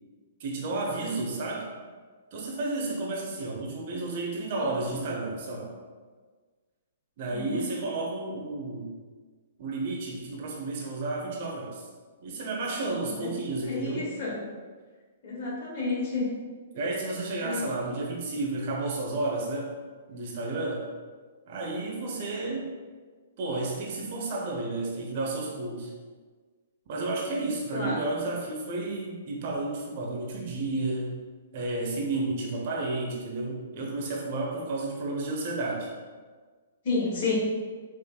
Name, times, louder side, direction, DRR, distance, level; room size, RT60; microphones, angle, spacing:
voice 1, 0.4-1.7 2.3-5.7 7.2-9.0 9.6-11.9 12.2-14.1 16.7-19.8 20.1-20.9 21.5-22.7 23.4-25.9 26.9-31.1 31.5-35.9, right 2 dB, 45° right, -2 dB, 0.9 m, -32 dB
voice 2, 7.3-7.6 13.2-14.4 15.2-16.3 17.4-17.7 27.7-28.0 36.8-37.3, left 3 dB, 45° left, -5 dB, 1.5 m, -31 dB
5.6 x 3.1 x 2.4 m, 1.4 s
figure-of-eight pair, 115°, 0 cm